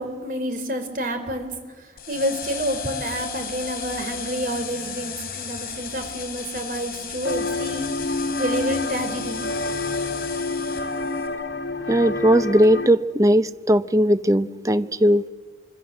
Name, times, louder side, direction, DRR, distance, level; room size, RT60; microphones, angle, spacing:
voice 1, 0.0-1.5 2.1-9.4, right 1 dB, 50° right, 7 dB, 3.8 m, -29 dB
sound 1, 2.0-11.3, left 6 dB, 55° left, 4.7 m, -34 dB
sound 2, 7.2-12.9, left 3 dB, 75° left, 1.5 m, -28 dB
voice 2, 11.9-15.2, equal, 20° right, 13 dB, 0.7 m, -18 dB
26.0 x 25.5 x 7.5 m, 1.4 s
head